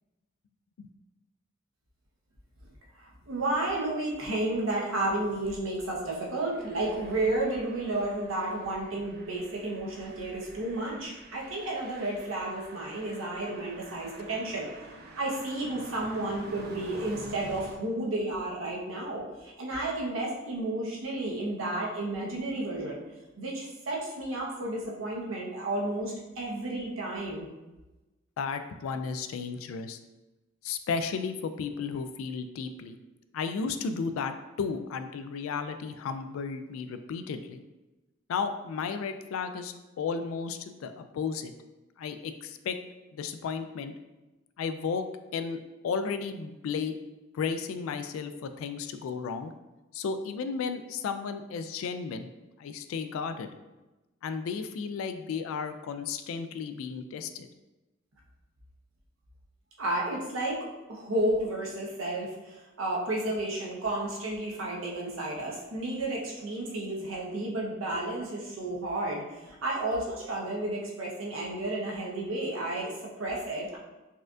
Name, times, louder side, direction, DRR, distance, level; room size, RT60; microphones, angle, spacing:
voice 1, 3.0-14.7 15.2-23.0 23.4-27.5 59.8-73.8, right 1 dB, 75° right, -2 dB, 0.8 m, -32 dB
sound 1, 6.1-17.8, right 2 dB, 50° right, 0.5 m, -49 dB
voice 2, 28.4-30.0 30.6-33.0 33.3-37.6 38.3-41.5 42.0-42.8 43.1-43.9 44.6-45.1 45.3-45.6 45.8-47.0 47.3-49.5 49.9-52.3 52.6-53.5 54.2-57.5, left 5 dB, 80° left, 9 dB, 0.3 m, -34 dB
4.2 x 2.4 x 2.5 m, 1.1 s
head